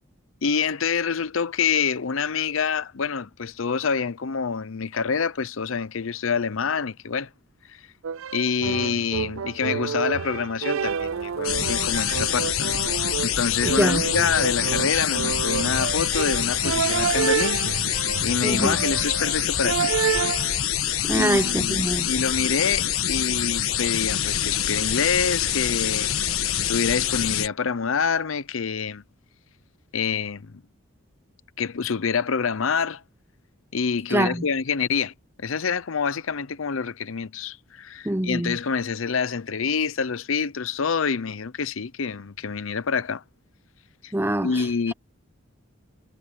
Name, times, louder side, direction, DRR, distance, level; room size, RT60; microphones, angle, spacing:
voice 1, 0.4-7.3 7.7-7.8 8.3-12.8 13.2-19.9 21.1-26.1 26.7-29.0 29.9-30.6 31.6-33.0 33.7-35.1 35.4-43.2 44.0-44.1 44.4-44.9, left 6 dB, 70° left, 0.7 m, -26 dB
sound 1, 8.0-20.6, right 7 dB, 70° right, 0.4 m, -29 dB
sound 2, 10.8-18.4, left 2 dB, 50° left, 7.6 m, -49 dB
sound 3, 11.4-27.5, left 10 dB, 85° left, 1.4 m, -25 dB
voice 2, 13.7-14.1 18.4-18.8 21.0-22.1 34.1-34.5 38.0-38.6 44.1-44.6, right 1 dB, 10° right, 0.8 m, -24 dB
head